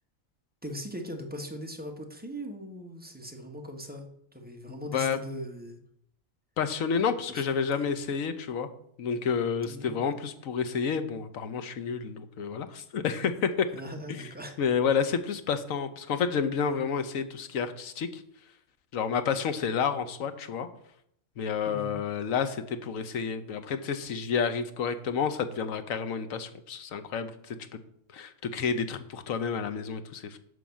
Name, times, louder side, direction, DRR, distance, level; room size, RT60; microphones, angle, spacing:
voice 1, 0.6-4.1 4.3-5.8 7.3-7.4 7.8-7.9 9.6-10.1 13.7-14.5 19.1-19.3 21.7-22.0, equal, 5° right, 2 dB, 1.2 m, -40 dB
voice 2, 4.7-5.2 6.6-8.7 9.0-13.7 14.6-18.2 18.9-20.7 21.4-27.8 28.1-30.4, left 6 dB, 90° left, 10 dB, 1.2 m, -30 dB
11.0 x 3.9 x 7.0 m, 0.71 s
omnidirectional pair, 1.4 m